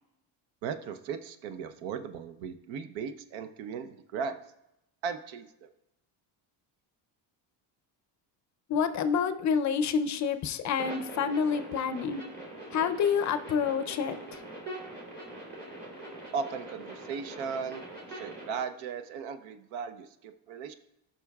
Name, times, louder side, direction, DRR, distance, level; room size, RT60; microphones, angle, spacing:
voice 1, 0.6-4.4 5.0-5.7 16.3-17.8 18.1-20.7, right 6 dB, 85° right, 10 dB, 0.8 m, -37 dB
voice 2, 8.7-12.2 12.7-14.4, left 6 dB, 40° left, 10 dB, 0.5 m, -28 dB
sound 1, 10.8-18.6, right 1 dB, 20° right, 3.1 m, -43 dB
15.5 x 6.0 x 2.3 m, 0.85 s
cardioid pair, 140°, 45 cm